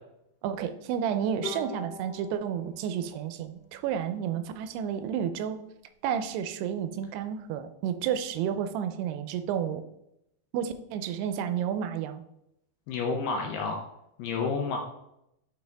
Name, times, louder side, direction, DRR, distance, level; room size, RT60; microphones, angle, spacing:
voice 1, 0.4-5.6 6.0-9.8 10.5-12.2, right 8 dB, 90° right, 10 dB, 2.7 m, -31 dB
Bowed string instrument, 1.4-4.8, left 4 dB, 60° left, 2.7 m, -44 dB
voice 2, 12.9-13.8 14.2-14.8, left 4 dB, 75° left, 2 dB, 2.1 m, -29 dB
7.6 x 4.8 x 3.4 m, 0.82 s
omnidirectional pair, 4.6 m